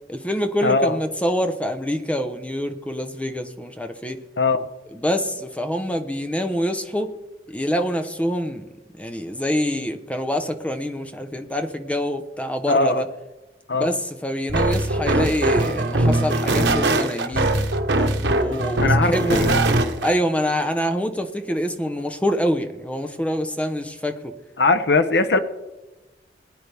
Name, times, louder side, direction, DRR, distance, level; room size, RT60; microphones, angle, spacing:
voice 1, 0.1-4.2 4.9-7.1 7.5-8.6 9.0-13.1 13.7-17.6 17.9-19.5 20.0-24.3, equal, 5° left, 6 dB, 0.9 m, -25 dB
voice 2, 0.6-1.0 4.4-4.7 12.7-13.0 13.7-13.9 18.8-19.6 24.6-25.4, left 3 dB, 65° left, 10 dB, 0.8 m, -20 dB
sound 1, 14.5-20.1, right 2 dB, 85° right, 1.3 m, -21 dB
22.0 x 9.6 x 3.5 m, 1.1 s
head